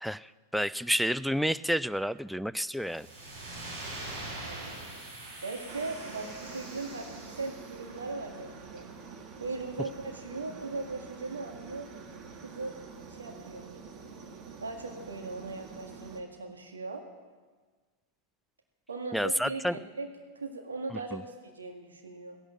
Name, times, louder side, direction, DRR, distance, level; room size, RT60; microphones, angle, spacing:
voice 1, 0.0-3.1 19.1-19.8 21.1-21.2, equal, ahead, 17 dB, 0.4 m, -30 dB
sound 1, 2.8-7.8, right 2 dB, 60° right, 6.1 m, -43 dB
voice 2, 4.4-5.1 5.4-8.9 9.4-11.9 12.4-12.8 13.1-13.7 14.6-17.0 18.9-20.1 20.4-22.4, right 3 dB, 75° right, 4 dB, 1.8 m, -39 dB
Aircraft, 5.7-16.2, right 5 dB, 35° right, 1.8 m, -47 dB
17.0 x 11.5 x 7.4 m, 1.4 s
figure-of-eight pair, 90°, 0 cm